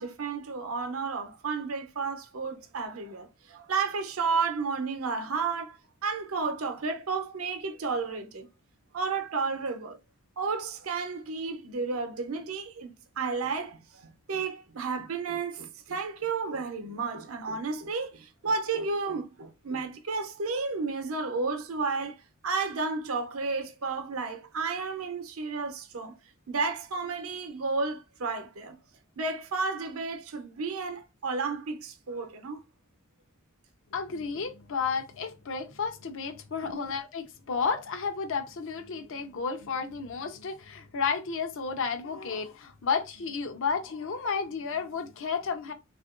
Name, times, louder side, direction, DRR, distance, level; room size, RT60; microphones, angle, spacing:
voice 1, 0.0-8.5 8.9-10.0 10.4-22.2 22.4-26.2 26.5-28.8 29.2-32.6 36.6-36.9, right 4 dB, 70° right, 0.7 m, -32 dB
voice 2, 33.9-45.7, left 5 dB, 65° left, 0.6 m, -32 dB
3.6 x 2.5 x 2.4 m
head